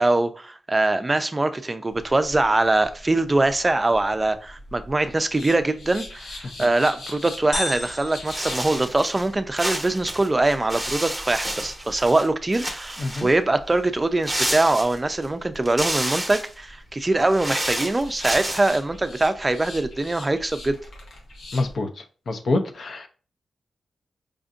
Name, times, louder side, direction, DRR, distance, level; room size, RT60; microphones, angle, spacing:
voice 1, 0.0-20.8, right 2 dB, 25° right, 0.4 m, -23 dB
sound 1, 1.9-21.8, left 1 dB, 85° left, 1.1 m, -43 dB
sound 2, 7.5-9.5, left 1 dB, 25° left, 0.7 m, -34 dB
sound 3, 8.3-9.3 9.6-12.3 12.5-13.4 14.2-15.3 15.6-16.5 17.2-18.8, right 1 dB, 5° right, 0.9 m, -30 dB
voice 2, 21.5-21.9 22.3-23.1, left 2 dB, 60° left, 0.6 m, -25 dB
5.0 x 2.6 x 2.4 m
wide cardioid pair, 95°, 0 cm